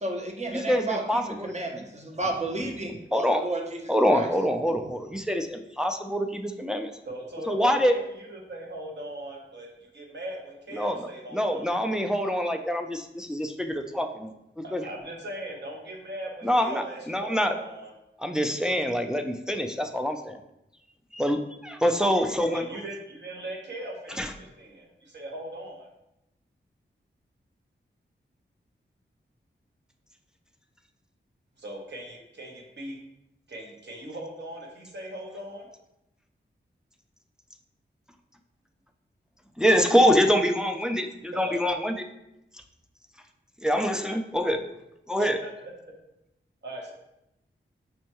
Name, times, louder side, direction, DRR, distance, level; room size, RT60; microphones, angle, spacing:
voice 1, 0.0-3.8 4.1-4.3, right 2 dB, 35° right, 2 dB, 0.7 m, -32 dB
voice 2, 0.5-1.5 3.1-3.4 3.9-6.9 7.5-8.0 10.7-11.0 11.3-14.8 16.4-17.6 18.2-20.4 21.1-22.6 24.2-24.3 39.6-42.1 43.6-44.6 45.1-45.4, equal, 5° right, 5 dB, 0.3 m, -25 dB
voice 3, 7.1-11.8 14.6-17.9 22.4-25.9 31.6-33.0 33.5-35.7 41.3-41.6 45.2-45.7 46.6-46.9, right 1 dB, 60° right, -1 dB, 1.0 m, -39 dB
5.3 x 2.2 x 2.9 m, 0.86 s
cardioid pair, 50°, 20 cm